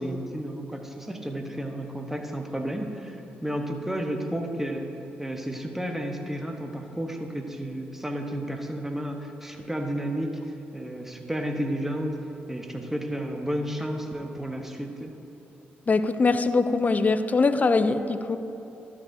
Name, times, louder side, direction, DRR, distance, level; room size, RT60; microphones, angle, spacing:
voice 1, 0.0-4.9 5.2-12.2 12.5-15.1, equal, 5° right, 3 dB, 1.0 m, -32 dB
voice 2, 15.9-18.4, left 3 dB, 35° left, 11 dB, 0.5 m, -22 dB
12.0 x 6.1 x 2.7 m, 2.9 s
hypercardioid pair, 45°, 5 cm